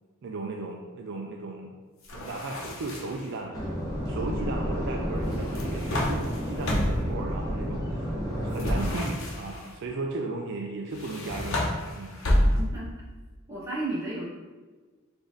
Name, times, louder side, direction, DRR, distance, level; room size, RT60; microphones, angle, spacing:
voice 1, 0.2-1.8 2.1-3.6 4.1-12.1, right 2 dB, 55° right, 1 dB, 0.4 m, -36 dB
Wardrobe Door, 2.0-3.3 5.3-7.2 8.5-9.7 10.9-12.9, left 1 dB, 65° left, 0.9 m, -29 dB
sound 1, 3.5-8.9, equal, 15° left, 1.1 m, -31 dB
voice 2, 12.4-12.9 13.5-14.2, right 2 dB, 15° right, -8 dB, 1.4 m, -33 dB
4.9 x 2.6 x 3.8 m, 1.3 s
head